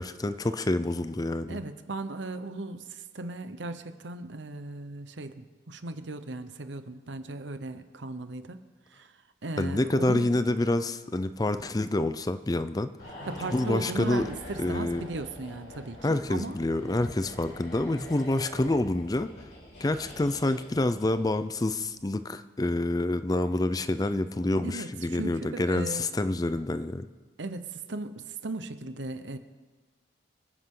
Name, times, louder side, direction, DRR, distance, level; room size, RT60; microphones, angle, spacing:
voice 1, 0.0-1.6 9.6-12.9 13.5-14.2 14.6-15.0 16.0-19.5 19.8-27.1, left 2 dB, 20° left, 12 dB, 0.5 m, -27 dB
voice 2, 1.5-9.1 9.4-10.3 13.3-16.6 24.6-26.1 27.4-29.4, right 2 dB, 80° right, 10 dB, 0.9 m, -37 dB
sound 1, 13.0-21.5 21.8-22.0, left 1 dB, 70° left, 5.5 m, -45 dB
26.5 x 9.8 x 3.8 m, 1.3 s
head